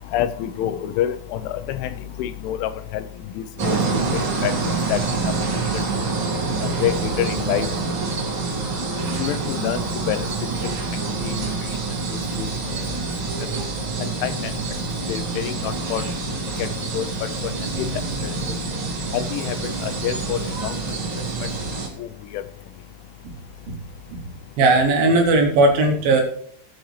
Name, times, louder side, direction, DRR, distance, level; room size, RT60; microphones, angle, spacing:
voice 1, 0.1-1.9 2.2-3.0 3.4-3.8 4.1-4.5 4.9-5.0 5.7-5.8 6.8-7.7 9.2-9.8 10.1-10.3 10.6-10.7 11.2-11.5 12.4-12.8 14.2-14.5 15.1-16.0 16.6-16.7 16.9-17.1 19.1-19.6 20.0-20.7 22.0-22.1, left 11 dB, 85° left, 10 dB, 3.2 m, -26 dB
sound 1, 3.6-21.9, right 4 dB, 45° right, 1.7 m, -26 dB
voice 2, 24.6-26.2, right 2 dB, 70° right, 3 dB, 2.4 m, -17 dB
19.5 x 7.8 x 3.2 m, 0.64 s
omnidirectional pair, 5.4 m